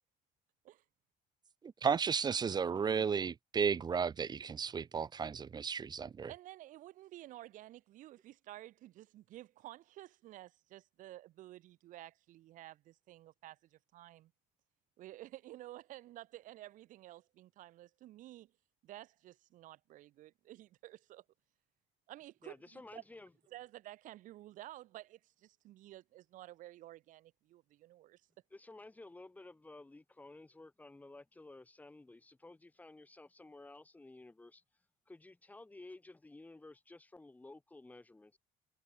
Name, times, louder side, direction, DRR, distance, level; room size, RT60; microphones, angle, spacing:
voice 1, 1.8-6.3, right 6 dB, 30° right, 2.6 m, -33 dB
voice 2, 6.3-14.3 15.0-18.5 18.8-21.2 22.1-23.0 23.5-28.2, right 15 dB, 70° right, 7.8 m, -52 dB
voice 3, 22.4-23.3 28.5-34.6 35.1-38.4, left 2 dB, 10° left, 7.5 m, -54 dB
cardioid pair, 135°, 14 cm